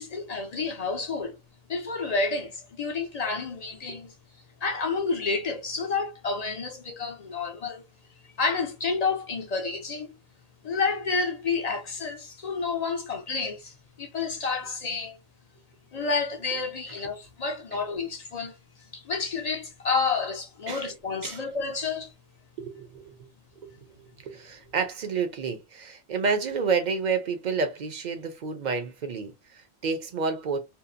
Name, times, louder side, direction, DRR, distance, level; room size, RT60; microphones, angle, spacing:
voice 1, 0.0-1.4 1.7-4.1 4.6-7.8 8.4-10.2 10.6-15.2 15.9-18.5 18.9-22.1, left 4 dB, 50° left, 0.6 m, -30 dB
voice 2, 22.6-23.3 23.6-23.7 24.2-30.6, right 5 dB, 55° right, 0.6 m, -30 dB
2.7 x 2.0 x 2.4 m
omnidirectional pair, 1.0 m